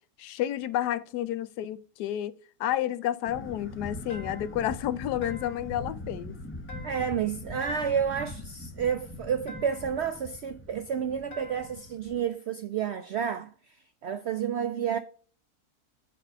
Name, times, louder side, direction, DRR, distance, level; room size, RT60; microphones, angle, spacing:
voice 1, 0.2-2.3 2.6-6.4, left 12 dB, 90° left, 1.2 m, -30 dB
sound 1, 3.2-12.2, left 1 dB, 15° left, 0.4 m, -42 dB
sound 2, 4.1-4.6 5.2-5.8 6.7-7.2 7.6-8.2 9.5-10.0 11.3-11.8, left 2 dB, 40° left, 1.5 m, -47 dB
voice 2, 6.8-13.5 14.0-15.0, right 7 dB, 75° right, 0.6 m, -30 dB
6.8 x 4.2 x 5.4 m
omnidirectional pair, 1.7 m